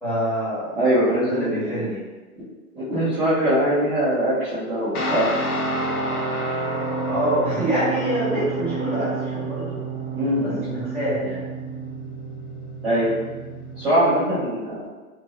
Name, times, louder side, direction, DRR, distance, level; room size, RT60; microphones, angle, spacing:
voice 1, 0.0-0.8 1.3-2.0 7.0-9.8 10.4-11.4, equal, 5° left, -13 dB, 1.2 m, -26 dB
voice 2, 0.8-1.9 2.3-2.4 2.7-5.3 10.1-10.7 12.8-13.1 13.7-14.8, equal, 10° right, -15 dB, 0.5 m, -22 dB
Guitar, 4.9-13.9, right 2 dB, 80° left, 1.1 m, -29 dB
3.0 x 2.5 x 2.4 m, 1.2 s
hypercardioid pair, 145°, 44 cm